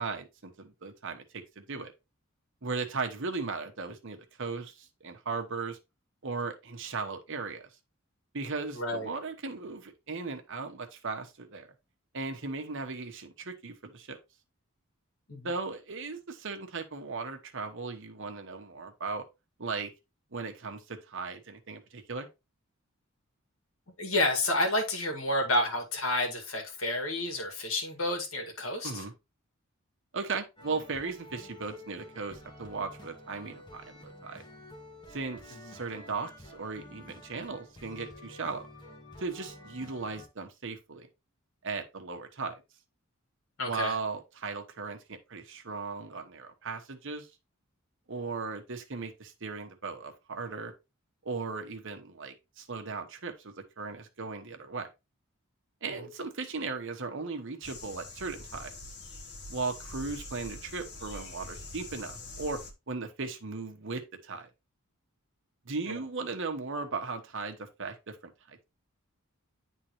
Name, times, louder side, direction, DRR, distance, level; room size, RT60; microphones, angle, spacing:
voice 1, 0.0-1.9 2.6-5.8 6.2-7.7 8.3-11.7 12.1-14.2 15.4-19.2 19.6-19.9 20.3-22.3 28.8-29.1 30.1-34.4 35.1-38.7 39.2-41.1 41.6-42.6 43.6-47.3 48.1-50.7 51.2-54.9 55.8-58.7 59.5-62.6 62.9-64.5 65.6-68.6, right 4 dB, 65° right, 1.1 m, -37 dB
voice 2, 8.7-9.1 15.3-15.5 24.0-29.0 35.7-35.8 43.6-43.9, left 1 dB, 70° left, 2.0 m, -30 dB
sound 1, 30.6-40.3, left 1 dB, 20° left, 1.6 m, -50 dB
sound 2, 57.6-62.7, left 2 dB, 55° left, 1.3 m, -44 dB
10.0 x 3.7 x 3.0 m
head